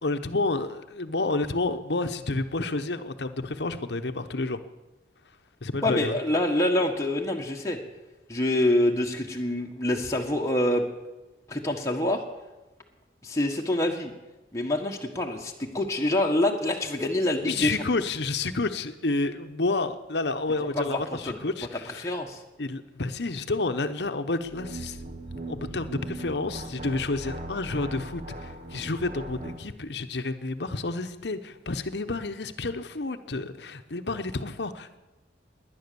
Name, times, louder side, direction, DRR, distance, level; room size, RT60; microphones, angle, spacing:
voice 1, 0.0-4.6 5.6-6.2 17.5-22.1 22.6-25.0 25.5-35.0, left 3 dB, 70° left, 9 dB, 1.0 m, -30 dB
voice 2, 5.8-7.8 8.3-10.8 11.5-12.2 13.2-14.1 14.5-17.8 20.7-21.0 21.3-21.4 22.0-22.4, left 1 dB, 15° left, 0 dB, 1.5 m, -26 dB
sound 1, 24.4-29.7, right 1 dB, 40° right, 1.2 m, -39 dB
19.0 x 10.5 x 7.0 m, 1.1 s
head